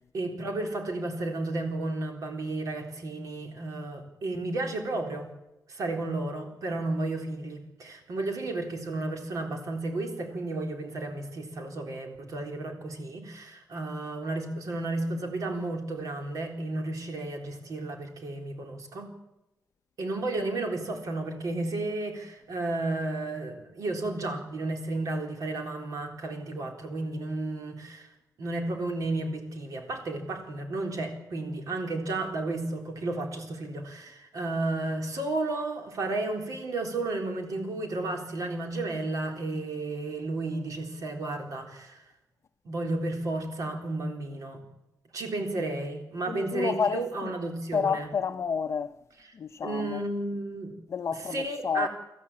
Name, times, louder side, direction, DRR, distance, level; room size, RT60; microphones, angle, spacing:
voice 1, 0.1-5.3 5.7-19.1 20.0-28.1 28.4-42.0 42.6-44.6 45.1-48.1 49.6-50.7 51.3-51.9, right 2 dB, 55° right, 3.9 m, -32 dB
voice 2, 46.3-47.3 47.7-48.9 49.3-50.0 50.9-51.9, left 6 dB, 45° left, 0.7 m, -30 dB
22.5 x 14.5 x 8.5 m
wide cardioid pair, 160°, 7 cm